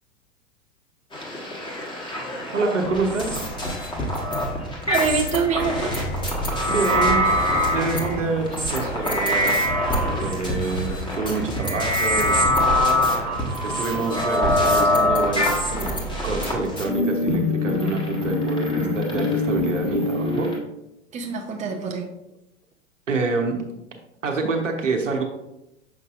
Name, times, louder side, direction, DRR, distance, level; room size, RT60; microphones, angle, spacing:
sound 1, 1.1-20.6, left 1 dB, 10° left, 1.4 m, -24 dB
voice 1, 2.5-3.4 6.7-7.3 7.7-12.4 13.1-13.3 13.6-20.5 23.1-23.6 24.2-25.2, right 3 dB, 80° right, 2 dB, 1.1 m, -27 dB
voice 2, 4.9-5.9 21.1-22.1, right 5 dB, 20° right, 3 dB, 0.8 m, -25 dB
sound 2, 5.7-11.0, left 1 dB, 45° left, 2.3 m, -36 dB
6.9 x 5.4 x 2.5 m, 0.88 s
figure-of-eight pair, 90°, 37 cm